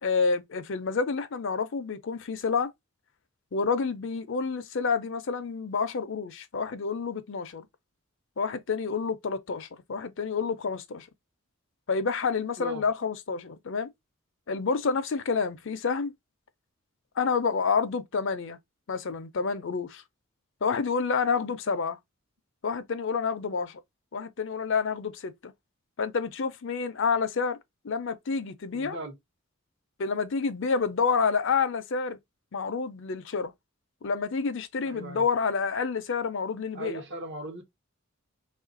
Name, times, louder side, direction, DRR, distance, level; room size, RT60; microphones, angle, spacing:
voice 1, 0.0-2.7 3.5-7.7 8.4-11.1 11.9-13.9 14.5-16.1 17.2-18.6 18.9-20.0 20.6-22.0 22.6-23.8 24.1-25.5 26.0-27.6 27.8-29.0 30.0-32.2 32.5-33.5 34.0-37.0, left 5 dB, 60° left, 0.5 m, -28 dB
voice 2, 28.7-29.1 34.8-35.3 36.7-37.6, right 1 dB, 55° right, 1.0 m, -37 dB
3.2 x 2.4 x 3.8 m
head